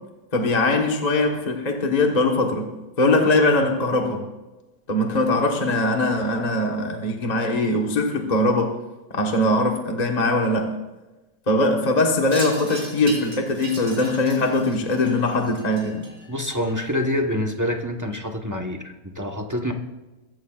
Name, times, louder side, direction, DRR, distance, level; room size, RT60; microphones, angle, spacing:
voice 1, 0.3-2.7 3.0-4.3 4.9-8.8 9.1-10.7 11.5-16.1, left 2 dB, 25° left, 2 dB, 1.3 m, -21 dB
Wind chime, 12.3-16.9, right 2 dB, 40° right, 4.5 m, -38 dB
voice 2, 16.3-19.7, left 1 dB, 15° right, 3 dB, 0.9 m, -26 dB
22.0 x 15.5 x 2.5 m, 1.1 s
omnidirectional pair, 2.2 m